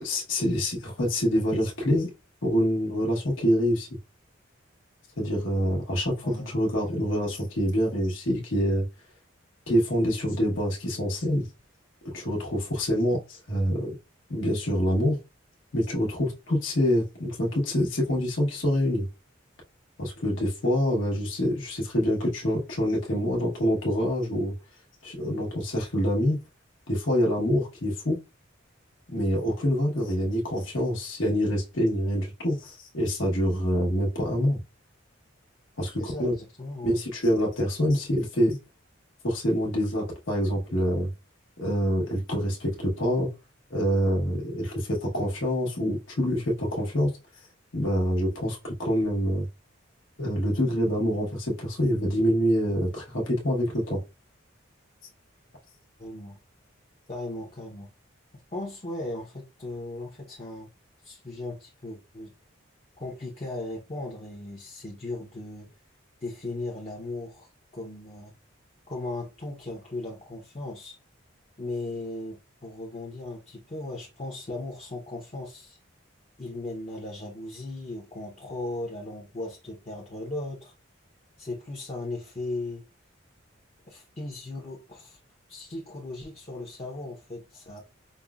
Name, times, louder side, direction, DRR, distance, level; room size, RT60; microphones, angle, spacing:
voice 1, 0.0-2.1 2.4-3.9 5.2-8.8 9.7-11.4 12.1-13.9 14.3-15.2 15.7-19.1 20.0-24.5 25.0-26.4 26.9-28.2 29.1-34.6 35.8-36.3 36.8-38.6 39.2-41.1 41.6-43.3 43.7-47.1 47.7-49.5 50.2-54.0, equal, 70° left, 1.1 m, -26 dB
voice 2, 6.2-6.6 6.8-6.9 36.0-37.0 56.0-56.4 57.1-57.9 58.5-60.7 61.0-62.3 63.0-65.7 66.2-68.3 68.9-71.0 71.6-75.8 76.4-80.7 81.4-82.8 83.9-85.2 85.5-87.8, left 2 dB, 30° left, 0.6 m, -37 dB
5.2 x 2.0 x 2.3 m
head